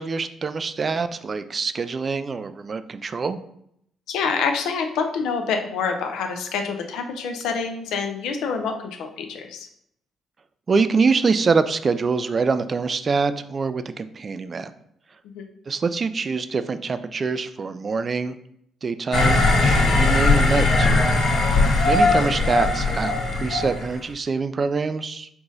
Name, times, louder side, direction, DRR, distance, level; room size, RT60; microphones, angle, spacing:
voice 1, 0.0-3.4 10.7-14.7 15.7-18.4 18.8-19.4 19.9-20.9 21.8-25.3, right 4 dB, 40° right, 12 dB, 0.3 m, -24 dB
voice 2, 4.1-8.7 9.0-9.7 15.3-15.5, left 5 dB, 90° left, 5 dB, 0.6 m, -26 dB
sound 1, 19.1-23.9, left 2 dB, 70° left, 1.1 m, -19 dB
4.8 x 2.5 x 3.9 m, 0.73 s
cardioid pair, 90°, 0 cm